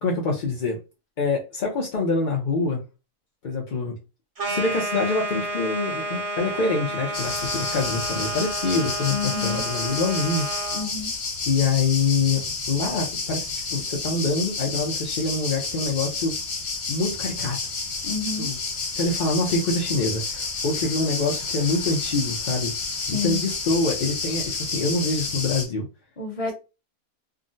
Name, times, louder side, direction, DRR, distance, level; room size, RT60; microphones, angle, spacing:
voice 1, 0.0-0.8 1.2-2.8 3.4-4.0 4.5-10.5 11.5-13.4 13.7-16.3 16.9-17.6 18.4-18.6 18.9-22.7 23.2-25.9, left 3 dB, 55° left, 0.5 m, -25 dB
sound 1, 4.4-10.9, right 1 dB, 35° right, 0.6 m, -31 dB
sound 2, 7.1-25.6, left 4 dB, 85° left, 1.5 m, -30 dB
voice 2, 9.1-9.6 10.7-11.1 18.0-18.5 23.1-23.4 26.2-26.5, left 4 dB, 30° left, 0.9 m, -29 dB
3.6 x 2.0 x 2.6 m
omnidirectional pair, 1.5 m